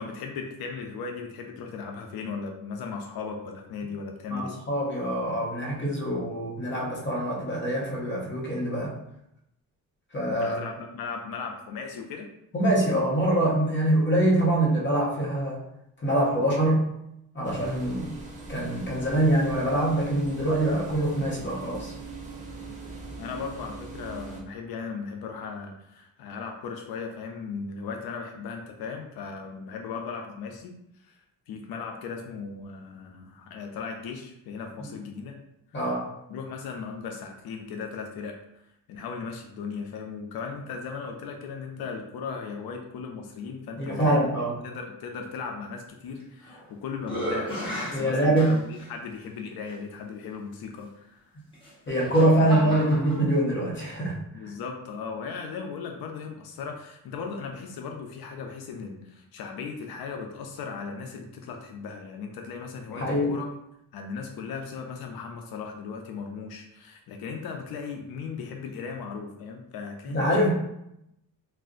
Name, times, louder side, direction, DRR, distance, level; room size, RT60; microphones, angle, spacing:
voice 1, 0.0-4.6 10.3-12.3 23.2-30.7 31.0-31.2 31.5-35.4 36.3-38.4 38.9-44.3 44.6-51.3 52.4-52.8 54.3-63.5 63.9-70.5, left 5 dB, 90° left, 3 dB, 0.5 m, -37 dB
voice 2, 4.3-8.9 10.1-10.6 12.5-15.6 16.0-16.8 17.3-18.1 18.5-21.9 35.7-36.0 43.8-44.5 47.9-48.5 51.9-54.2 62.9-63.4 70.1-70.5, right 1 dB, 30° left, -3 dB, 0.9 m, -24 dB
sound 1, 17.4-24.4, right 3 dB, 20° right, 0.5 m, -41 dB
sound 2, 46.2-46.7 47.0-48.9 49.7-49.8 51.5-53.2, right 1 dB, 15° left, 1.2 m, -34 dB
2.4 x 2.1 x 3.6 m, 0.81 s
cardioid pair, 130°, 36 cm